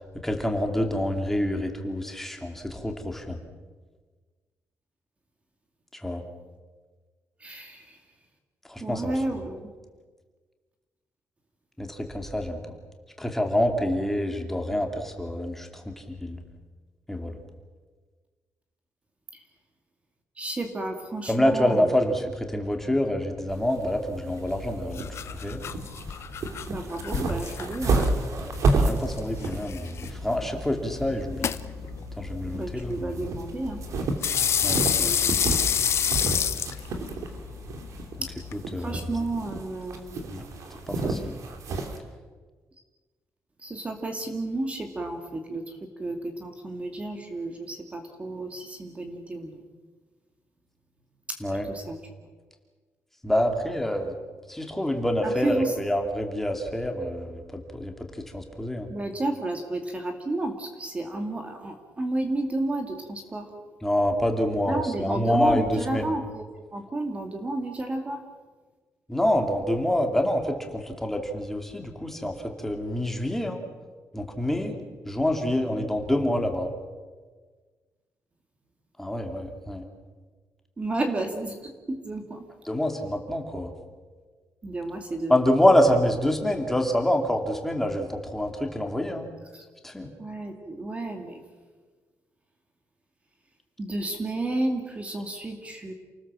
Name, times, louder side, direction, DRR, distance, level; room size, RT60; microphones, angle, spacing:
voice 1, 0.2-3.4 6.0-6.2 8.7-9.1 11.8-12.6 13.2-16.4 17.1-17.4 21.3-25.0 25.3-25.6 28.3-31.5 32.2-33.2 34.6-34.8 38.7-39.1 40.3-40.4 40.9-41.4 51.4-51.7 53.2-54.1 54.5-57.9 58.3-58.9 63.8-66.1 69.1-73.6 74.1-74.8 75.1-76.7 79.0-79.8 82.6-83.7 85.3-89.3 89.8-90.1, left 1 dB, 5° left, 3 dB, 2.7 m, -26 dB
voice 2, 7.4-8.0 8.8-9.7 20.4-22.0 26.7-28.0 32.5-33.8 35.0-35.6 38.2-38.3 38.8-40.2 43.6-49.6 51.3-51.4 51.7-52.0 55.2-55.8 58.9-63.5 64.7-66.4 66.7-68.2 80.8-82.5 84.6-85.4 89.5-89.6 90.2-91.4 93.8-95.9, right 2 dB, 25° right, 5 dB, 2.2 m, -32 dB
sound 1, 23.5-42.0, right 3 dB, 70° right, 3.1 m, -31 dB
sound 2, 24.4-38.6, left 8 dB, 55° left, 0.9 m, -30 dB
28.5 x 19.5 x 7.5 m, 1.4 s
wide cardioid pair, 160°, 6 cm